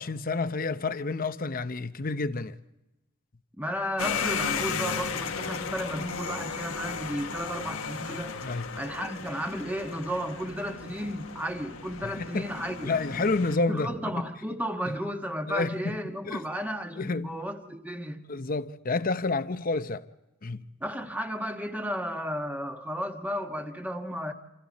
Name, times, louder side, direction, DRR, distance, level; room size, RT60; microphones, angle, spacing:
voice 1, 0.0-2.5 8.4-8.7 12.0-12.5 12.8-14.2 15.5-16.0 16.2-16.4 16.9-17.4 18.3-20.0 20.4-20.6, left 3 dB, 45° left, 0.8 m, -29 dB
voice 2, 3.6-8.4 8.7-13.3 13.7-18.2 20.8-24.3, equal, 10° right, 1.4 m, -33 dB
sound 1, 4.0-13.6, left 6 dB, 85° left, 1.4 m, -35 dB
28.0 x 27.5 x 4.2 m
head